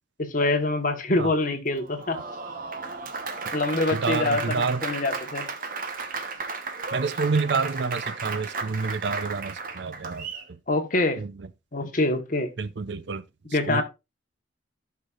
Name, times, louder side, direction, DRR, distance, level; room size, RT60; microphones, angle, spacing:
voice 1, 0.2-2.2 3.5-5.5 10.7-11.2 11.7-12.5 13.5-13.8, left 2 dB, 45° left, 1.3 m, -25 dB
Applause, 1.8-10.5, right 4 dB, 45° right, 1.0 m, -34 dB
voice 2, 3.9-4.8 6.9-10.6 11.2-11.5 12.6-13.2 13.5-13.8, right 4 dB, 65° right, 0.6 m, -28 dB
14.5 x 5.9 x 2.4 m
head